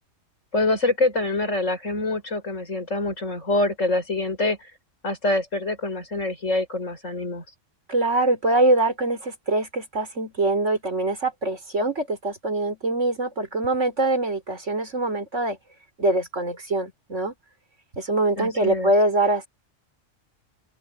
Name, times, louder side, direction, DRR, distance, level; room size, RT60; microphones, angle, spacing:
voice 1, 0.5-4.7 5.0-7.4 18.4-18.9, left 2 dB, 75° left, 5.3 m, -25 dB
voice 2, 7.9-15.6 16.0-17.3 17.9-19.5, right 2 dB, 70° right, 4.5 m, -23 dB
open air
omnidirectional pair, 1.3 m